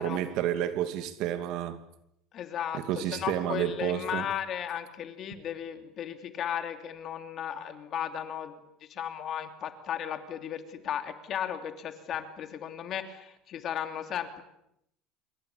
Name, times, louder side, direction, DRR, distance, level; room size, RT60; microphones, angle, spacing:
voice 1, 0.0-1.8 2.7-4.3, right 11 dB, 55° right, 2.5 m, -30 dB
voice 2, 2.3-14.4, left 9 dB, 35° left, 2.9 m, -35 dB
27.5 x 23.5 x 8.6 m
cardioid pair, 160°, 0 cm